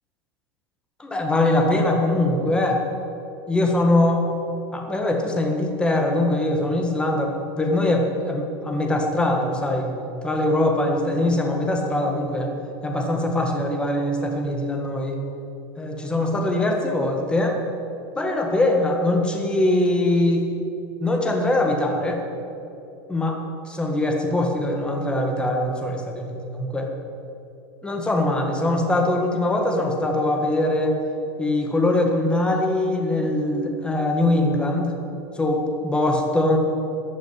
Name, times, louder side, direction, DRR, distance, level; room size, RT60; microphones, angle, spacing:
voice 1, 1.0-2.8 3.5-4.3 4.7-9.9 10.2-12.5 12.8-15.2 15.8-17.6 18.2-20.5 21.0-22.2 23.1-23.4 23.7-26.9 27.8-30.9 31.4-35.0 35.4-36.6, left 1 dB, 5° left, 2 dB, 1.7 m, -22 dB
15.0 x 9.0 x 9.8 m, 2.8 s
supercardioid pair, 170°, 13 cm